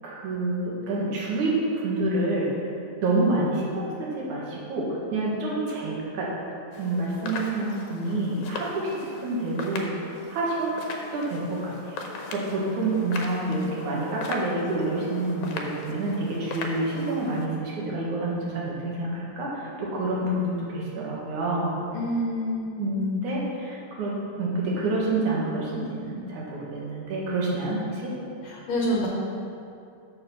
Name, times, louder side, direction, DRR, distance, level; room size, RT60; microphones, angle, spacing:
voice 1, 0.0-2.6 3.0-6.3 6.8-10.8 11.1-21.7 22.8-28.1, right 2 dB, 85° right, -4 dB, 3.0 m, -28 dB
sound 1, 6.7-17.5, left 3 dB, 90° left, 2.3 m, -38 dB
voice 2, 21.9-22.9 28.4-29.1, equal, 70° left, -3 dB, 2.0 m, -27 dB
6.7 x 6.5 x 6.0 m, 2.5 s
omnidirectional pair, 3.3 m